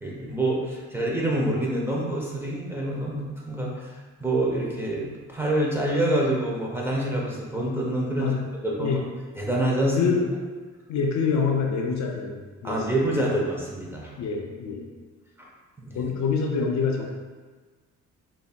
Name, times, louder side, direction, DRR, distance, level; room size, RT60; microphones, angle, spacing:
voice 1, 0.0-3.9 4.2-8.4 8.6-9.0 9.4-10.1 12.6-14.1 15.4-15.5 15.8-16.1, right 1 dB, 10° right, -4 dB, 0.9 m, -26 dB
voice 2, 10.0-10.3 10.9-12.9 14.2-14.9 15.9-17.1, left 5 dB, 70° left, 1 dB, 0.6 m, -26 dB
5.1 x 2.7 x 2.4 m, 1.4 s
cardioid pair, 90°, 30 cm